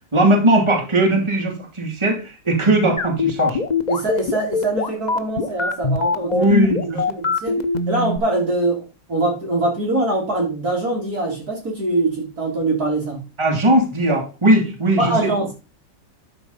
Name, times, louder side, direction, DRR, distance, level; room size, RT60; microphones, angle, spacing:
voice 1, 0.1-3.6 6.2-7.2 13.4-15.3, right 1 dB, 15° right, 0 dB, 2.5 m, -18 dB
sound 1, 3.0-8.2, left 4 dB, 40° left, 0.6 m, -21 dB
voice 2, 3.9-6.5 6.9-13.2 15.0-15.5, right 2 dB, 50° right, -2 dB, 3.2 m, -23 dB
12.0 x 4.6 x 5.5 m, 0.31 s
omnidirectional pair, 2.1 m